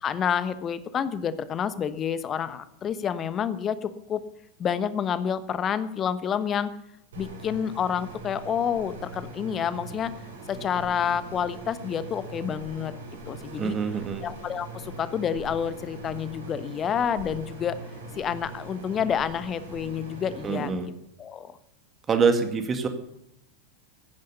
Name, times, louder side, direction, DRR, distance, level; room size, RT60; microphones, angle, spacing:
voice 1, 0.0-4.2 4.6-6.7 7.1-10.1 10.5-12.9 13.3-13.8 14.2-17.7 18.2-20.7 21.2-21.6, left 8 dB, 25° left, 14 dB, 1.1 m, -29 dB
sound 1, 7.1-20.7, right 2 dB, 65° right, 5.6 m, -41 dB
voice 2, 13.6-14.2 20.4-20.9 22.1-22.9, right 5 dB, 20° right, 7 dB, 2.1 m, -25 dB
15.5 x 10.5 x 6.9 m, 0.82 s
figure-of-eight pair, 90°, 0 cm